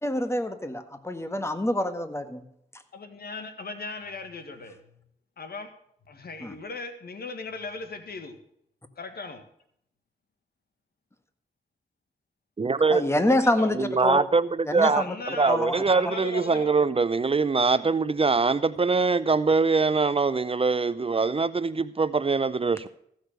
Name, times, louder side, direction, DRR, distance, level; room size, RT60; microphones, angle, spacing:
voice 1, 0.0-2.4 6.4-6.5 12.9-14.2 14.7-15.1 15.5-15.8, left 1 dB, 15° left, 9 dB, 1.7 m, -26 dB
voice 2, 2.9-4.8 5.4-5.7 6.1-8.4 9.0-9.4 13.3-13.7 14.9-16.8, left 3 dB, 70° left, 7 dB, 1.8 m, -38 dB
voice 3, 12.6-13.0 13.8-15.0 15.4-22.9, right 4 dB, 35° right, 16 dB, 0.5 m, -23 dB
15.0 x 6.5 x 6.6 m, 0.71 s
cardioid pair, 50°, 17 cm